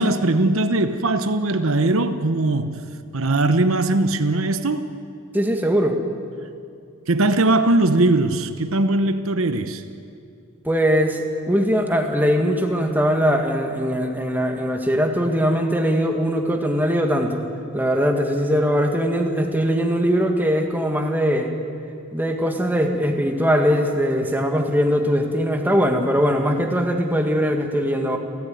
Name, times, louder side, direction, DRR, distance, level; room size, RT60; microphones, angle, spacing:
voice 1, 0.0-2.8 3.1-4.9 7.1-9.8, right 2 dB, 70° right, 1.0 m, -20 dB
voice 2, 5.3-6.0 10.6-17.4 17.7-21.5 22.1-28.2, equal, 10° right, 1.9 m, -21 dB
29.5 x 14.0 x 9.4 m
head